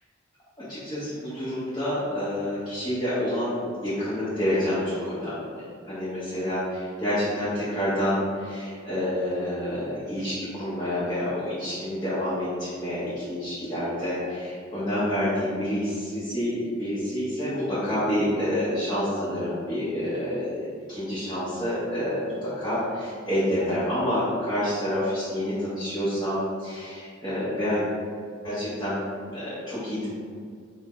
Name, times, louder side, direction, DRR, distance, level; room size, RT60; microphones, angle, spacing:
voice 1, 0.6-27.9 28.4-29.0 29.3-30.1, left 1 dB, 20° left, -13 dB, 0.8 m, -28 dB
3.5 x 2.0 x 3.6 m, 2.1 s
head